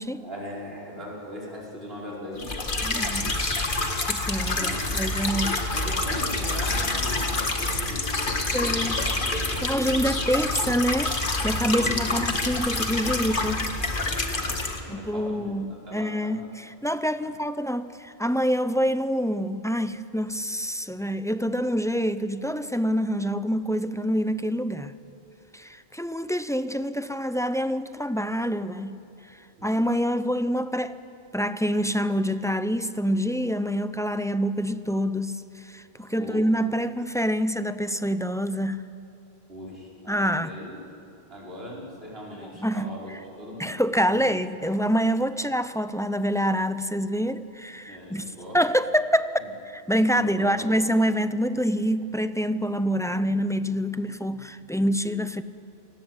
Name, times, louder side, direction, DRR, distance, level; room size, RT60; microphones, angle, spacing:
voice 1, 0.2-3.5 4.5-4.9 5.7-9.1 9.5-10.0 11.7-12.2 14.0-15.6 15.9-16.4 17.2-17.3 29.6-29.7 36.2-36.4 39.5-40.8 41.3-43.1 43.4-43.8 44.1-44.3 47.9-48.6 50.1-50.7, equal, 70° right, 5.7 m, -40 dB
sound 1, 2.4-14.8, left 2 dB, 55° left, 1.9 m, -27 dB
voice 2, 2.8-3.3 3.9-5.6 8.5-9.0 9.3-13.7 14.9-24.9 25.5-29.0 29.6-31.0 31.3-38.8 40.1-40.6 42.4-43.2 43.6-55.4, equal, 5° left, 0.5 m, -26 dB
29.5 x 19.0 x 8.1 m
omnidirectional pair, 1.0 m